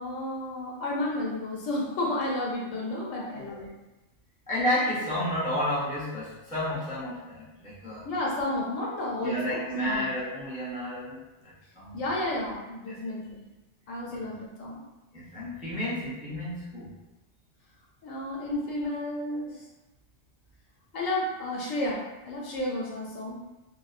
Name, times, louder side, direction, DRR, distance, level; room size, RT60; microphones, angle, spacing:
voice 1, 0.0-3.7 8.0-10.1 11.9-13.4 13.9-14.8 18.0-19.6 20.9-23.4, left 1 dB, 90° left, -4 dB, 1.1 m, -32 dB
voice 2, 3.1-3.6 4.5-8.0 9.2-12.0 12.9-13.0 14.1-14.3 15.1-17.0, left 1 dB, 10° right, -9 dB, 0.4 m, -31 dB
2.6 x 2.1 x 2.4 m, 1.0 s
omnidirectional pair, 1.3 m